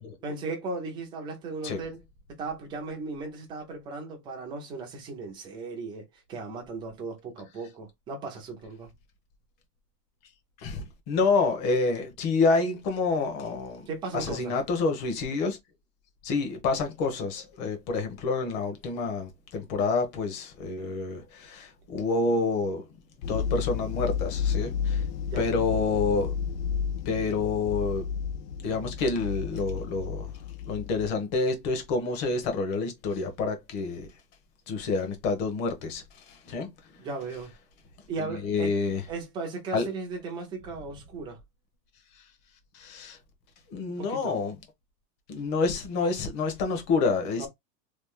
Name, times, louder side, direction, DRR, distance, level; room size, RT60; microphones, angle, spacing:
voice 1, 0.2-2.0 2.4-8.9 13.9-14.5 25.2-25.6 37.0-37.5 38.1-38.7 39.1-41.4 44.0-44.4 47.4-47.5, right 3 dB, 10° right, 0.4 m, -36 dB
voice 2, 10.6-13.9 14.1-15.6 16.2-22.9 23.2-25.0 25.4-26.3 27.0-28.1 28.6-30.3 30.6-34.1 34.7-36.7 38.2-39.0 39.7-39.9 42.1-42.2 42.7-43.2 43.7-44.6 45.3-47.5, left 4 dB, 40° left, 1.1 m, -28 dB
sound 1, 23.2-31.1, left 7 dB, 90° left, 0.7 m, -31 dB
3.2 x 2.4 x 3.6 m
supercardioid pair, 155°, 48 cm